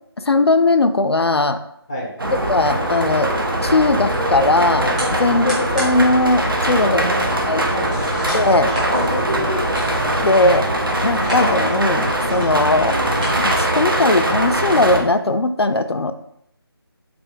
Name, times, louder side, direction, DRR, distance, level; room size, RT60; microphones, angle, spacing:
voice 1, 0.2-1.6 2.5-3.3 3.6-7.0 7.5-7.7 8.3-8.7 10.2-10.7 11.0-12.9 13.4-16.1, left 2 dB, 75° left, 9 dB, 0.4 m, -18 dB
sound 1, 2.2-15.0, right 1 dB, 60° right, 0.9 m, -21 dB
sound 2, 3.6-13.3, equal, 15° right, 1.0 m, -29 dB
voice 2, 6.8-7.3 7.7-8.3 8.6-9.5 12.6-12.9, equal, 10° left, -3 dB, 0.5 m, -30 dB
3.5 x 3.4 x 3.9 m, 0.75 s
figure-of-eight pair, 165°, 13 cm